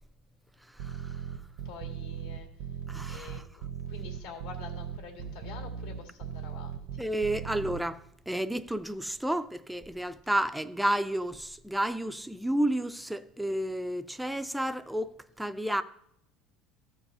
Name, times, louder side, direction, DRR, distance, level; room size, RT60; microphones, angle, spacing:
voice 1, 0.7-1.2 2.9-3.4 7.0-15.1 15.4-15.8, right 1 dB, ahead, 0.3 m, -31 dB
sound 1, 0.8-7.8, right 8 dB, 90° right, 1.0 m, -38 dB
voice 2, 1.6-2.5 3.1-3.6 3.9-7.1, left 5 dB, 80° left, 2.2 m, -47 dB
14.0 x 4.7 x 5.5 m
cardioid pair, 155°, 0 cm